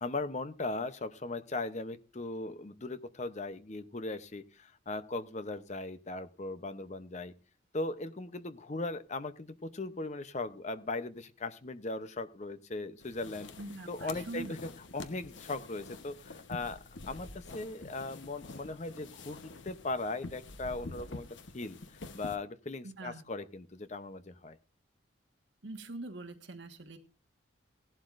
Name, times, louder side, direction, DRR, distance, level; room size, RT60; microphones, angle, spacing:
voice 1, 0.0-7.3 7.7-13.5 13.9-16.8 17.1-24.6, left 2 dB, 35° left, 12 dB, 0.7 m, -38 dB
sound 1, 13.0-22.4, left 3 dB, 70° left, 1.0 m, -47 dB
voice 2, 13.6-14.6 22.8-23.2 25.6-27.0, right 2 dB, 70° right, 5 dB, 1.5 m, -43 dB
17.0 x 11.5 x 2.5 m, 0.35 s
head